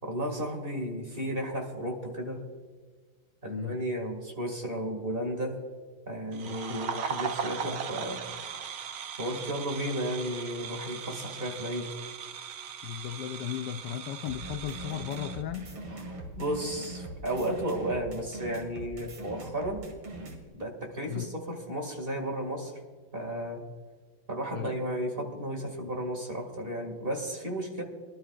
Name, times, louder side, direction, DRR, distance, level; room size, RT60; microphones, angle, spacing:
voice 1, 0.0-2.4 3.4-5.6 6.1-8.2 9.2-11.9 15.9-16.0 16.3-19.8 20.5-22.7 23.1-23.6 24.3-27.8, right 1 dB, 25° right, 2.3 m, -33 dB
voice 2, 6.3-7.0 12.8-15.7 21.1-21.3 24.5-24.7, left 11 dB, 75° left, 1.0 m, -36 dB
sound 1, 6.3-15.4, right 7 dB, 60° right, 1.0 m, -38 dB
sound 2, 14.2-20.4, right 1 dB, 80° right, 3.0 m, -41 dB
23.0 x 12.0 x 2.5 m
omnidirectional pair, 2.3 m